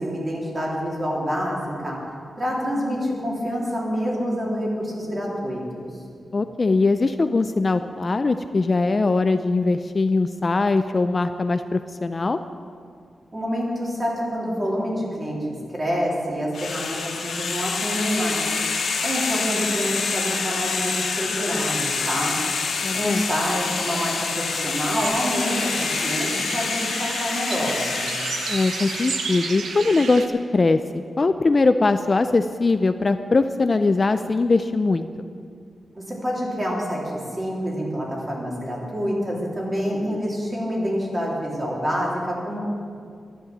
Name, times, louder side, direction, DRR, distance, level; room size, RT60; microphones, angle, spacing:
voice 1, 0.0-2.0 2.4-5.9 13.3-15.4 15.7-18.4 19.0-22.4 22.9-28.1 35.9-37.0 37.4-42.6, equal, 25° right, -3 dB, 3.3 m, -27 dB
voice 2, 6.3-12.4 22.8-23.2 28.5-30.3 30.5-30.8 31.2-35.3, left 3 dB, 30° left, 9 dB, 0.4 m, -21 dB
sound 1, 16.5-29.6, left 5 dB, 80° left, 1.6 m, -27 dB
sound 2, 25.0-30.3, right 5 dB, 80° right, 1.0 m, -32 dB
11.5 x 11.0 x 7.3 m, 2.3 s
wide cardioid pair, 135°, 0 cm